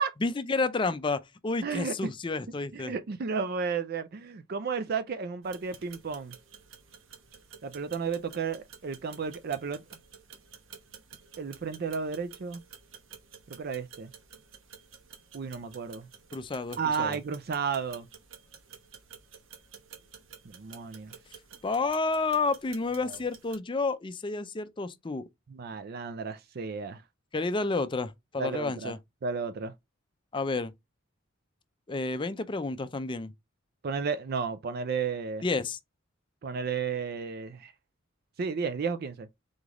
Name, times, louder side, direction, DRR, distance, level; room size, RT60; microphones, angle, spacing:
voice 1, 0.2-2.9 16.3-17.2 21.6-25.3 27.3-29.0 30.3-30.7 31.9-33.3 35.4-35.8, left 3 dB, 25° left, 0.4 m, -30 dB
voice 2, 1.6-2.1 2.7-6.3 7.6-9.8 11.4-12.6 13.5-14.1 15.3-16.1 16.8-18.1 20.4-21.1 23.0-23.2 25.5-27.0 28.4-28.9 29.2-29.7 33.8-35.4 36.4-37.7 38.4-39.3, right 5 dB, 50° right, 0.4 m, -33 dB
sound 1, 5.4-23.6, right 7 dB, 70° right, 1.0 m, -52 dB
3.9 x 3.3 x 3.6 m
head